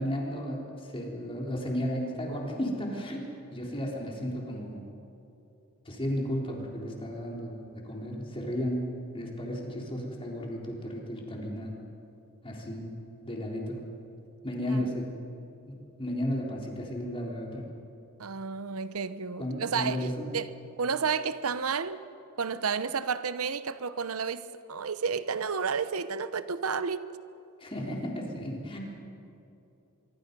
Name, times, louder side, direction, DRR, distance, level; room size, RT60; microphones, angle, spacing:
voice 1, 0.0-3.3 3.5-4.9 5.9-8.9 9.1-11.7 12.4-12.9 13.2-13.8 14.4-15.1 15.7-17.7 19.4-20.3 27.6-28.8, equal, 25° left, 3.8 m, -34 dB
voice 2, 18.2-20.1 20.3-20.5 20.8-22.0 22.4-27.1, right 5 dB, 80° right, 0.8 m, -31 dB
25.0 x 23.5 x 5.4 m
head